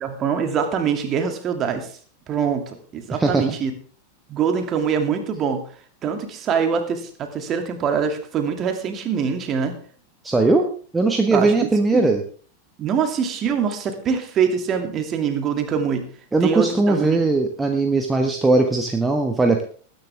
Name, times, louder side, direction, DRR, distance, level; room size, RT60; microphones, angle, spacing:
voice 1, 0.0-1.9 2.3-3.7 4.3-5.7 6.0-9.7 11.3-12.1 12.8-16.1 16.4-17.2, right 6 dB, 30° right, 6 dB, 2.5 m, -24 dB
voice 2, 10.2-10.6 10.9-12.2 16.3-19.6, right 3 dB, 10° right, 3 dB, 1.4 m, -19 dB
20.5 x 10.0 x 3.5 m, 0.43 s
figure-of-eight pair, 90°, 0 cm